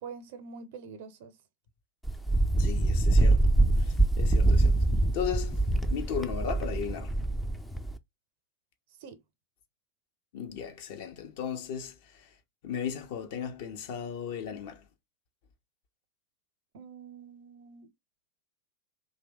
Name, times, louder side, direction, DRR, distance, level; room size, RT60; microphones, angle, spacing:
voice 1, 0.0-1.4 9.0-9.2 16.7-17.9, right 5 dB, 60° right, 0.6 m, -45 dB
Wind, 2.0-8.0, right 2 dB, 5° left, 0.4 m, -24 dB
voice 2, 2.6-3.5 3.8-4.8 5.1-5.6 5.9-7.2 10.3-12.3 12.6-14.8, left 8 dB, 55° left, 0.7 m, -36 dB
2.7 x 2.1 x 3.6 m
figure-of-eight pair, 85°, 0 cm